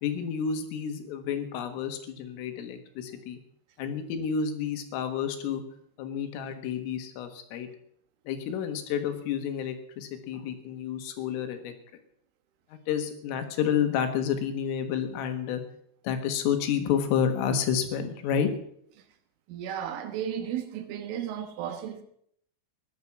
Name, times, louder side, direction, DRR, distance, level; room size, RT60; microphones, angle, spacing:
voice 1, 0.0-3.4 3.8-5.6 6.0-7.7 8.3-11.7 12.9-15.6 16.0-18.5, left 8 dB, 90° left, 4.2 m, -30 dB
voice 2, 19.5-22.0, right 9 dB, 80° right, 3.8 m, -34 dB
17.5 x 11.5 x 6.0 m
omnidirectional pair, 5.6 m